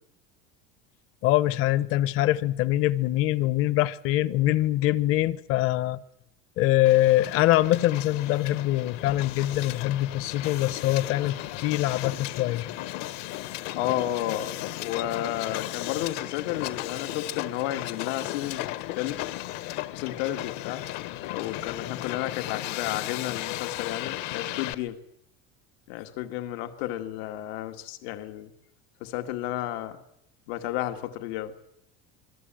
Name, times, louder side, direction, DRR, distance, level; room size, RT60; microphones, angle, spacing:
voice 1, 1.2-6.0 6.6-12.7, left 15 dB, 45° left, 1.0 m, -24 dB
Hiss, 6.8-24.7, left 16 dB, 60° left, 1.4 m, -35 dB
voice 2, 13.8-19.2 19.9-20.9 21.3-25.0 25.9-28.5 29.0-30.0 30.5-31.5, left 13 dB, 85° left, 2.1 m, -32 dB
26.5 x 21.0 x 9.0 m
cardioid pair, 180°, 30 cm